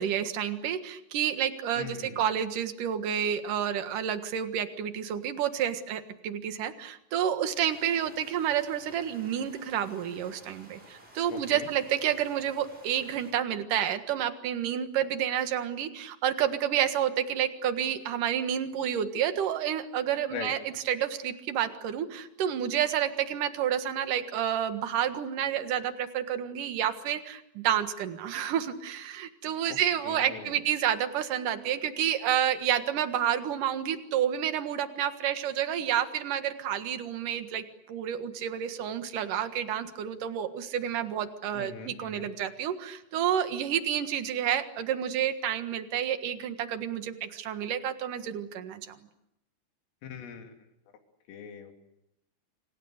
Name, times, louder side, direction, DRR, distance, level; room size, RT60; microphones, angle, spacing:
voice 1, 0.0-49.0, right 9 dB, 60° right, 9 dB, 2.3 m, -30 dB
voice 2, 1.7-2.3 11.3-11.7 20.3-20.5 29.7-29.8 30.0-30.6 41.5-42.3 50.0-50.5 51.3-51.7, left 6 dB, 75° left, 4 dB, 5.7 m, -41 dB
sound 1, 7.5-13.3, right 1 dB, 10° right, 5.5 m, -54 dB
29.5 x 26.0 x 6.6 m, 0.83 s
omnidirectional pair, 5.8 m